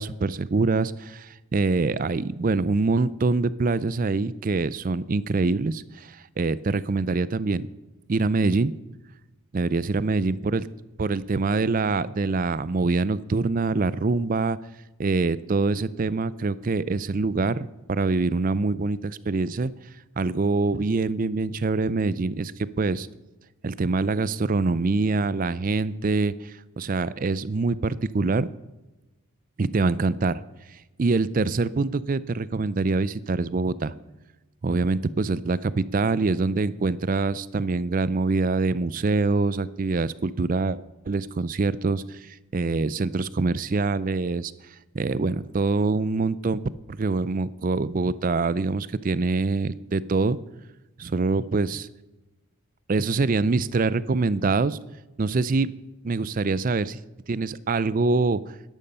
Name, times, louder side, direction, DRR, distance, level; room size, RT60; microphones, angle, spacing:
voice 1, 0.0-7.7 8.1-8.7 9.5-10.7 11.0-14.6 15.0-19.7 20.2-23.1 23.6-28.5 29.6-30.4 30.7-33.9 34.6-40.8 41.0-44.5 44.9-46.6 46.9-50.4 51.0-51.9 52.9-54.8 55.2-55.7 56.0-57.0 57.3-58.4, right 3 dB, 35° right, 18 dB, 0.4 m, -25 dB
13.0 x 11.0 x 5.5 m, 1.1 s
head